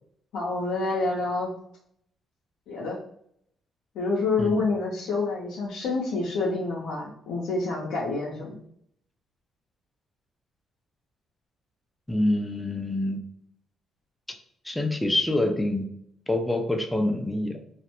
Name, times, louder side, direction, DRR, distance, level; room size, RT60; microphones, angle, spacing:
voice 1, 0.3-1.5 2.7-3.0 3.9-8.6, left 3 dB, 85° left, -5 dB, 0.5 m, -28 dB
voice 2, 12.1-13.2 14.6-15.9 16.3-17.6, left 1 dB, 10° left, 5 dB, 0.4 m, -26 dB
2.4 x 2.0 x 2.9 m, 0.68 s
cardioid pair, 90°, 0 cm